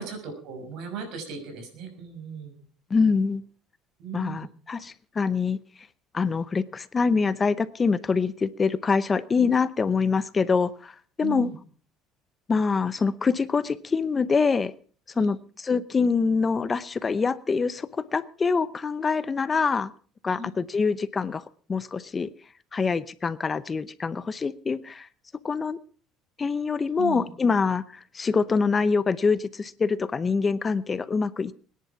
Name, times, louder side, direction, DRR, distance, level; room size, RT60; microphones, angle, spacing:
voice 1, 0.0-2.6 4.0-4.5 11.2-11.6 15.1-15.3 20.4-20.5 27.0-27.3, right 6 dB, 70° right, 6 dB, 6.0 m, -37 dB
voice 2, 2.9-3.4 4.1-5.6 6.1-11.5 12.5-14.7 15.2-15.4 15.6-19.9 20.2-21.4 21.7-22.3 22.7-25.1 25.4-25.8 26.4-31.5, left 5 dB, 25° left, 16 dB, 0.7 m, -25 dB
21.5 x 10.5 x 5.8 m, 0.43 s
cardioid pair, 125°, 0 cm